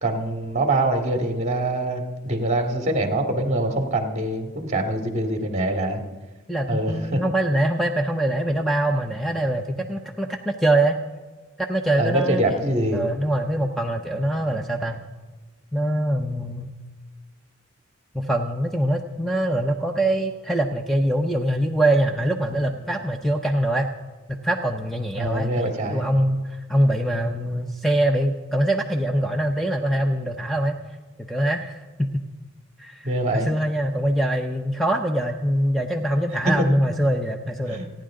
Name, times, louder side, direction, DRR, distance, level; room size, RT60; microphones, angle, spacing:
voice 1, 0.0-6.0 6.7-7.2 12.0-13.1 25.2-26.1 33.0-33.5 37.7-37.9, right 1 dB, 35° right, 3 dB, 2.1 m, -24 dB
voice 2, 6.5-11.0 11.6-15.0 15.7-16.7 18.1-23.9 24.3-30.8 31.2-32.1 32.8-37.8, right 1 dB, ahead, 3 dB, 0.7 m, -23 dB
30.0 x 10.5 x 3.8 m, 1.3 s
head